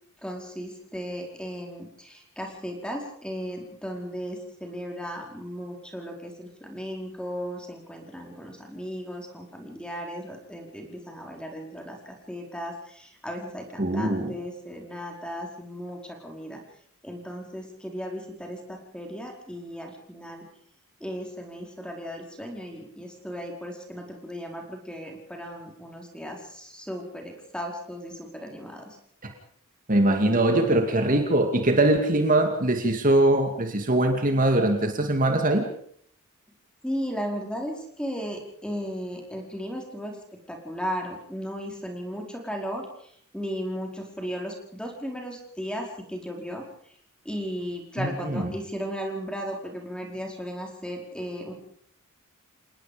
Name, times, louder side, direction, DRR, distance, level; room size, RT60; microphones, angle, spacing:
voice 1, 0.2-16.6 17.0-20.5 21.0-29.0 36.8-40.2 40.5-46.6 47.2-51.5, equal, 5° left, 2 dB, 4.9 m, -36 dB
voice 2, 13.8-14.3 29.9-35.7 48.0-48.5, right 1 dB, 40° right, 4 dB, 2.5 m, -22 dB
28.5 x 19.5 x 5.3 m, 0.62 s
head